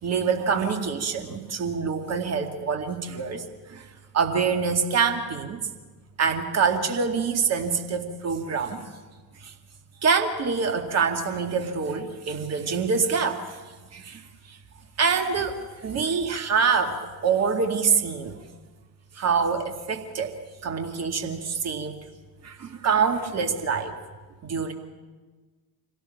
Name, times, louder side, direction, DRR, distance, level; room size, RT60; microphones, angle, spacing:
voice 1, 0.0-3.9 4.1-5.6 6.2-8.8 9.4-9.5 10.0-13.6 13.9-14.2 14.5-14.6 15.0-18.4 19.2-22.0 22.4-24.0 24.4-24.7, right 5 dB, 30° right, 5 dB, 2.3 m, -25 dB
25.5 x 17.5 x 7.3 m, 1.3 s
figure-of-eight pair, 70°, 49 cm